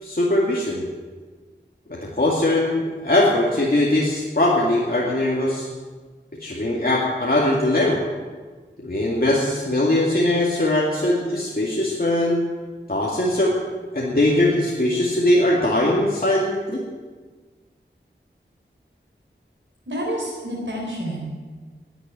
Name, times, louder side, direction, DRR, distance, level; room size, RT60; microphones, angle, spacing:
voice 1, 0.0-0.8 1.9-5.7 6.4-8.0 8.8-12.4 12.9-13.6 13.9-16.8, left 1 dB, 50° left, -4 dB, 2.3 m, -21 dB
voice 2, 19.9-21.4, equal, 75° right, -3 dB, 4.1 m, -29 dB
12.0 x 10.0 x 9.2 m, 1.4 s
wide cardioid pair, 50°, 20 cm